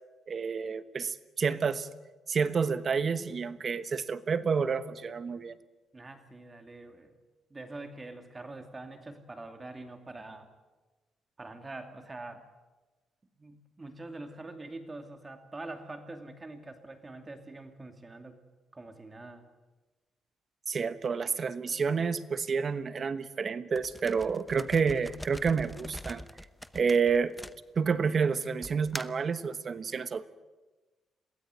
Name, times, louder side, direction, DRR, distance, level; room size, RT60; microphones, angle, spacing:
voice 1, 0.3-1.9 2.3-5.6 20.7-26.2 26.7-27.3 27.8-30.3, right 5 dB, 45° right, 14 dB, 1.1 m, -29 dB
voice 2, 5.9-7.1 7.5-10.5 11.4-12.4 13.4-18.4 18.7-19.4, right 2 dB, 25° right, 7 dB, 2.5 m, -44 dB
sound 1, 23.7-28.1 28.6-29.3, left 1 dB, 5° left, 0.8 m, -43 dB
22.5 x 16.5 x 9.3 m, 1.2 s
cardioid pair, 90°, 0 cm